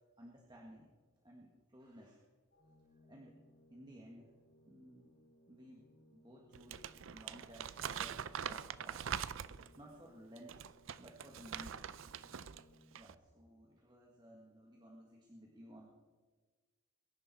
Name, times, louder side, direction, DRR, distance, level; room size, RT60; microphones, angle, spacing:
voice 1, 0.2-0.9 1.2-2.2 3.1-3.4 3.7-4.3 4.6-5.0 5.5-5.8 6.1-9.0 9.7-10.7 11.0-12.3 13.0-15.9, equal, 20° right, -2 dB, 1.7 m, -56 dB
Organ, 2.5-13.2, left 1 dB, 60° left, 2.3 m, -66 dB
Crumpling crinkling, 6.5-9.8 10.4-12.6 12.9-13.1, right 8 dB, 70° right, 0.5 m, -43 dB
22.5 x 11.0 x 4.2 m, 1.4 s
head